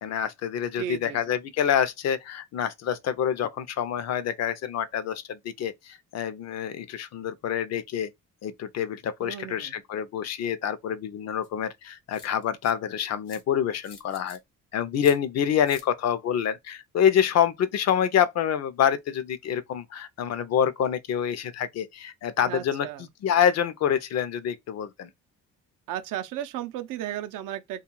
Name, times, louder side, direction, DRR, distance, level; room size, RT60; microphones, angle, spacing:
voice 1, 0.0-8.1 8.4-14.4 14.7-22.9 23.2-25.1, left 9 dB, 55° left, 0.5 m, -26 dB
voice 2, 0.8-1.4 9.2-9.8 15.5-15.6 22.4-23.1 25.9-27.8, right 12 dB, 80° right, 0.5 m, -35 dB
sound 1, 11.4-11.5 12.1-12.7 13.3-13.4 13.8-14.4 15.0-15.2 15.7-15.9, left 6 dB, 75° left, 1.0 m, -47 dB
2.3 x 2.3 x 2.9 m
cardioid pair, 100°, 32 cm